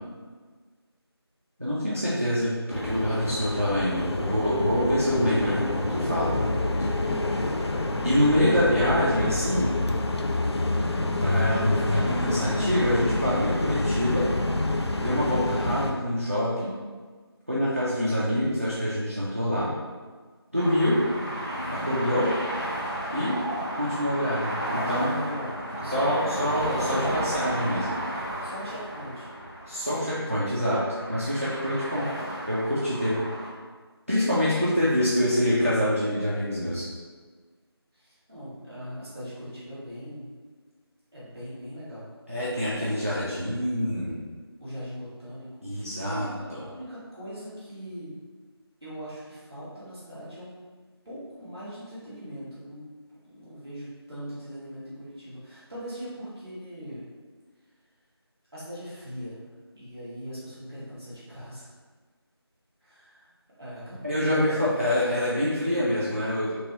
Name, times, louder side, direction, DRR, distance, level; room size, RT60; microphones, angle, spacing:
voice 1, 1.6-6.4 6.8-6.9 8.0-9.7 11.2-14.3 15.0-16.7 17.5-19.7 20.5-21.0 21.7-22.3 23.1-23.4 23.7-25.1 25.9-27.9 29.7-32.1 32.5-33.2 34.1-36.8 42.3-44.2 45.6-46.6 64.0-66.5, equal, 35° right, -8 dB, 0.4 m, -26 dB
sound 1, 2.7-15.9, left 2 dB, 80° left, 0.4 m, -27 dB
sound 2, 20.5-33.5, right 1 dB, 40° left, 1.3 m, -33 dB
voice 2, 24.5-26.4 28.4-29.3 37.9-40.3 41.1-42.1 42.7-43.0 44.6-48.1 48.8-50.6 51.0-52.9 53.2-57.1 58.5-59.5 59.7-61.7 62.8-63.3 63.6-64.7 65.0-65.3, equal, 5° right, -21 dB, 0.8 m, -40 dB
2.9 x 2.8 x 2.9 m, 1.5 s
figure-of-eight pair, 170°, 14 cm